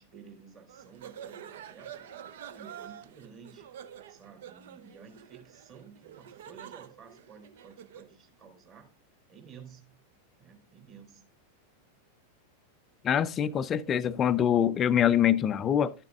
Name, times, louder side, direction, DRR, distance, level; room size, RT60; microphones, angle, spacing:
voice 1, 0.0-2.0 2.5-3.7 4.1-8.9 9.3-10.0 10.4-11.3 13.5-14.1, right 6 dB, 35° right, 3.1 m, -52 dB
sound 1, 0.7-8.2, right 9 dB, 55° right, 0.6 m, -47 dB
voice 2, 13.0-15.9, left 9 dB, 25° left, 0.4 m, -24 dB
12.0 x 7.0 x 2.4 m
figure-of-eight pair, 90°, 0 cm